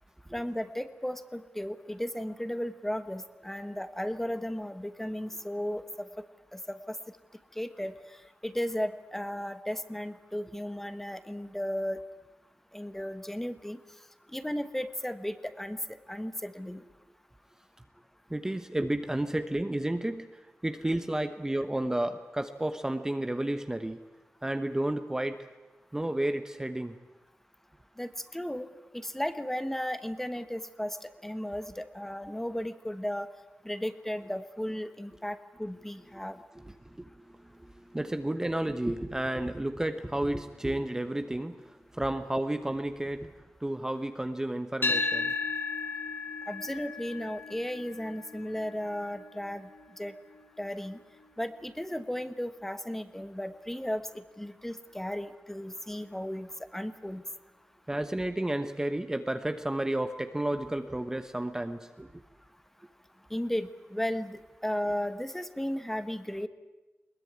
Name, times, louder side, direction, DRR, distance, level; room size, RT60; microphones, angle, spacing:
voice 1, 0.3-6.1 6.5-6.9 7.6-7.9 8.4-12.0 12.7-13.8 14.3-15.8 16.1-16.8 28.0-28.7 28.9-31.0 31.2-33.3 33.6-36.4 46.5-49.7 50.0-50.2 50.6-51.0 51.4-57.2 63.3-66.5, equal, 5° left, 11 dB, 1.2 m, -35 dB
voice 2, 18.3-20.3 20.6-24.0 24.4-25.5 25.9-26.9 36.5-43.3 43.6-45.3 57.9-62.2, right 1 dB, 10° right, 8 dB, 1.0 m, -32 dB
sound 1, 44.8-53.0, left 4 dB, 50° left, 2.3 m, -36 dB
21.0 x 20.5 x 9.5 m, 1.1 s
wide cardioid pair, 120°, 5 cm